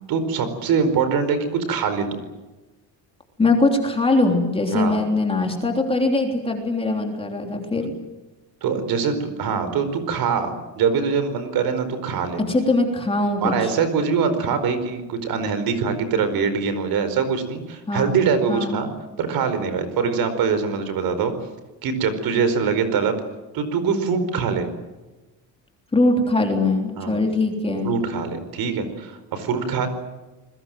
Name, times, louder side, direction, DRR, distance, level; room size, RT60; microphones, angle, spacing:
voice 1, 0.1-2.2 4.7-4.9 7.7-7.9 8.6-12.4 13.4-18.9 19.2-21.3 21.8-23.1 23.5-24.7 27.0-27.2 27.8-29.9, right 6 dB, 55° right, 11 dB, 4.8 m, -23 dB
voice 2, 3.4-7.9 12.5-13.5 17.9-18.2 18.5-18.8 25.9-27.9, left 2 dB, 15° left, 2 dB, 3.4 m, -21 dB
28.5 x 21.5 x 7.8 m, 1.1 s
cardioid pair, 170°, 43 cm